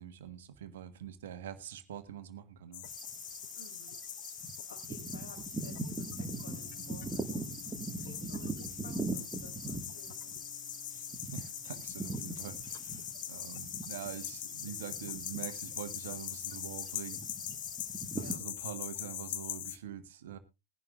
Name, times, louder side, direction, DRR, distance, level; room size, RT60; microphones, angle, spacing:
voice 1, 0.0-2.9 10.9-11.0 11.3-17.2 18.1-20.4, right 10 dB, 60° right, 12 dB, 1.3 m, -45 dB
sound 1, 2.7-19.8, left 14 dB, 50° left, 0.7 m, -42 dB
sound 2, 2.8-18.4, right 3 dB, 10° right, 1.6 m, -42 dB
voice 2, 3.5-4.0 4.7-10.4 18.1-18.5, left 3 dB, 70° left, 4 dB, 3.3 m, -55 dB
sound 3, 6.3-16.4, right 1 dB, 80° right, 1.7 m, -59 dB
20.5 x 11.0 x 2.4 m, 0.25 s
figure-of-eight pair, 90°, 0 cm